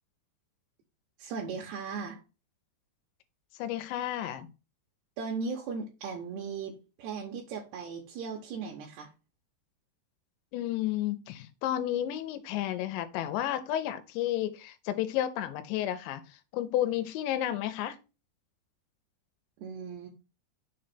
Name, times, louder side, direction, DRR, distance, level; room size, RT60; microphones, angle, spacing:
voice 1, 1.2-2.2 5.2-9.1 19.6-20.1, right 5 dB, 75° right, 2.8 m, -37 dB
voice 2, 3.6-4.5 10.5-16.2 16.5-18.0, left 12 dB, 80° left, 3.0 m, -31 dB
6.7 x 3.3 x 5.7 m
omnidirectional pair, 5.2 m